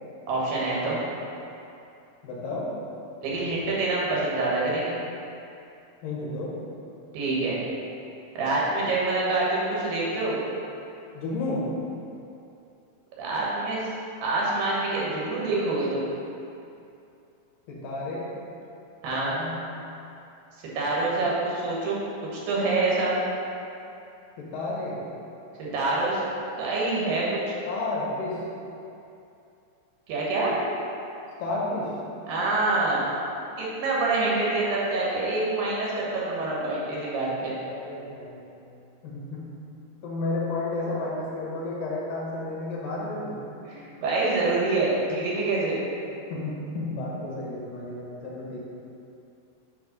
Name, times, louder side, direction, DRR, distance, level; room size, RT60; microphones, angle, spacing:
voice 1, 0.3-1.0 3.2-5.0 7.1-7.6 8.3-10.4 13.2-13.8 14.2-16.1 19.0-19.3 20.7-22.0 22.3-23.1 25.6-26.2 26.5-27.5 30.1-30.5 32.3-33.1 33.6-37.5 43.7-45.8, right 2 dB, 80° right, -6 dB, 3.1 m, -26 dB
voice 2, 2.2-2.7 6.0-6.6 11.1-11.7 17.7-18.3 19.1-19.6 24.4-25.0 27.7-28.4 31.4-32.0 37.7-38.5 39.0-39.5 40.0-43.4 46.3-48.6, left 2 dB, 80° left, -5 dB, 2.9 m, -32 dB
8.8 x 3.0 x 5.3 m, 2.7 s
omnidirectional pair, 4.0 m